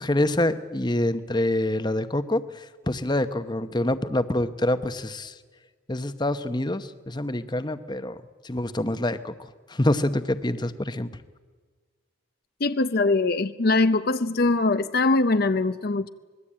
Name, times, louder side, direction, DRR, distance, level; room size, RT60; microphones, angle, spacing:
voice 1, 0.0-5.4 5.9-11.1, left 1 dB, 20° left, 11 dB, 0.9 m, -26 dB
voice 2, 12.6-16.1, left 3 dB, 50° left, 10 dB, 0.6 m, -22 dB
25.0 x 21.0 x 8.7 m, 1.4 s
head